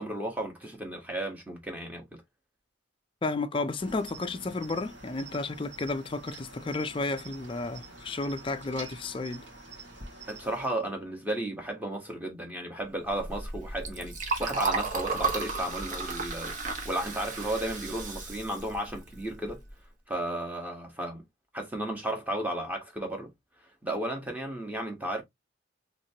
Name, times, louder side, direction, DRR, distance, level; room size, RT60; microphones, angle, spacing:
voice 1, 0.0-2.2 10.3-14.1 14.4-16.5 16.8-19.6 20.1-21.2 21.5-23.3 23.8-25.2, right 1 dB, 10° right, 1.1 m, -34 dB
voice 2, 3.2-9.5, left 3 dB, 25° left, 0.4 m, -32 dB
Cricket, 3.8-10.7, right 3 dB, 65° right, 1.7 m, -47 dB
Liquid, 13.0-19.7, right 4 dB, 40° right, 1.0 m, -34 dB
3.2 x 3.0 x 2.8 m
head